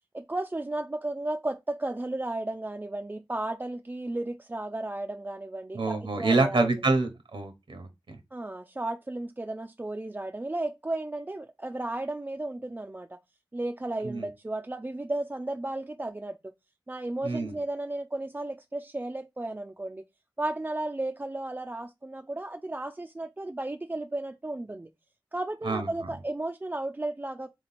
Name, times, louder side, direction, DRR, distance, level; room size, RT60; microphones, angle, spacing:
voice 1, 0.1-6.7 8.3-13.1 13.5-16.4 16.9-20.0 20.4-24.9 25.3-27.5, right 2 dB, 20° right, 0.3 m, -34 dB
voice 2, 5.7-7.9 14.0-14.3 17.2-17.6 25.6-25.9, right 3 dB, 80° right, 0.9 m, -26 dB
3.7 x 3.0 x 4.0 m
wide cardioid pair, 60°, 9 cm